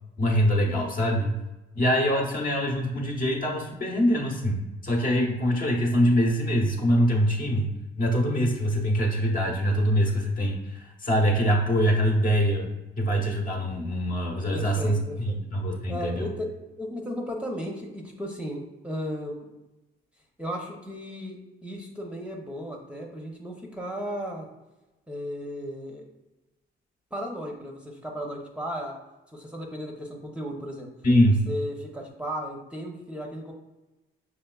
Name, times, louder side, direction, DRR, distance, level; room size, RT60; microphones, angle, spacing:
voice 1, 0.2-1.3 1.7-7.7 8.0-12.7 13.0-16.3 31.0-31.4, equal, 45° left, 0 dB, 0.9 m, -24 dB
voice 2, 14.5-15.4 15.9-16.5 16.8-19.5 20.4-24.5 25.1-26.1 27.1-29.0 29.3-30.9 31.5-33.5, equal, 5° right, -1 dB, 0.7 m, -35 dB
5.5 x 3.0 x 2.3 m, 1.0 s
cardioid pair, 90°, 20 cm